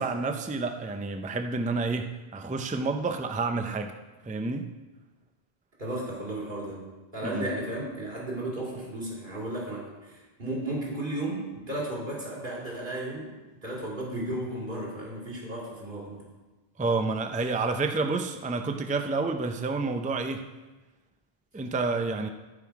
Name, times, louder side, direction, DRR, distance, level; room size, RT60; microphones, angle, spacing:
voice 1, 0.0-3.9 4.2-4.7 7.2-7.5 16.8-20.4 21.5-22.3, right 3 dB, 10° right, 7 dB, 0.3 m, -29 dB
voice 2, 5.8-6.9 7.1-16.3, right 1 dB, 55° right, -4 dB, 2.9 m, -34 dB
14.5 x 5.5 x 4.7 m, 1.2 s
omnidirectional pair, 1.1 m